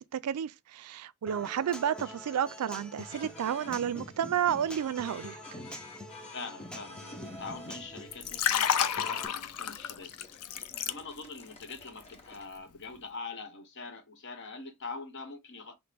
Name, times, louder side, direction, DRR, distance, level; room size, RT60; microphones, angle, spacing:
voice 1, 0.0-5.4, right 9 dB, 90° right, 0.4 m, -31 dB
Human voice / Acoustic guitar, 1.3-9.3, equal, 5° left, 0.4 m, -46 dB
sound 1, 3.0-12.5, left 2 dB, 30° left, 0.9 m, -49 dB
voice 2, 6.3-10.5 10.8-15.8, left 4 dB, 55° left, 1.0 m, -44 dB
Liquid, 8.1-11.4 11.7-12.0, left 9 dB, 85° left, 0.5 m, -30 dB
5.8 x 2.0 x 3.4 m
head